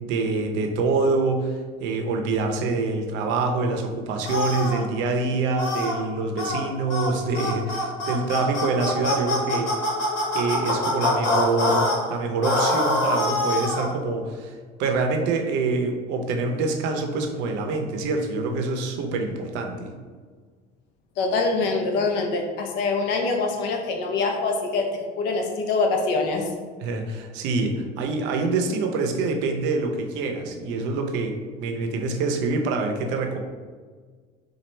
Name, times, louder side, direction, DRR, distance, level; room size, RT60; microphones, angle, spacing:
voice 1, 0.0-9.7 10.3-19.9 26.8-33.4, right 3 dB, 75° right, 3 dB, 0.6 m, -26 dB
sound 1, 4.2-4.8 5.6-5.9 6.4-6.6 6.9-7.1 7.3-12.0 12.4-13.9, left 2 dB, 90° left, 1.2 m, -24 dB
voice 2, 21.2-24.9 25.2-26.5, left 3 dB, 70° left, 3 dB, 0.7 m, -24 dB
4.2 x 2.4 x 3.2 m, 1.5 s
cardioid pair, 145°, 19 cm